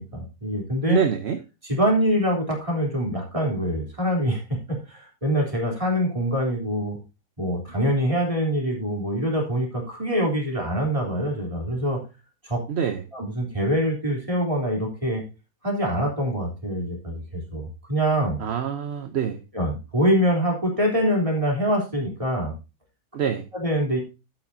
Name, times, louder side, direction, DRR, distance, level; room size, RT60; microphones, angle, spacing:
voice 1, 0.0-1.0 1.6-7.0 7.4-12.0 12.4-12.6 13.1-15.2 15.6-18.4 19.5-22.5 23.5-24.0, equal, 20° right, -1 dB, 3.4 m, -24 dB
voice 2, 0.9-1.4 12.7-13.0 18.4-19.4 23.1-23.5, right 7 dB, 50° right, 8 dB, 0.9 m, -25 dB
12.0 x 8.7 x 2.7 m, 0.29 s
omnidirectional pair, 1.7 m